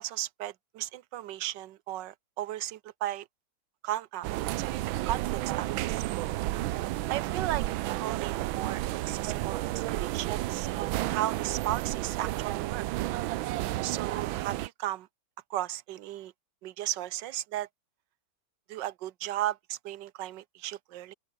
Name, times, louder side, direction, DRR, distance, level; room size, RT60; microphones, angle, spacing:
voice 1, 0.0-3.3 3.8-4.3 4.6-4.7 5.1-6.0 6.7-6.8 7.1-12.8 13.8-15.1 15.5-16.3 16.6-17.7 18.7-21.1, right 13 dB, 70° right, 1.4 m, -35 dB
sound 1, 4.2-14.7, right 16 dB, 90° right, 1.4 m, -31 dB
open air
omnidirectional pair, 2.1 m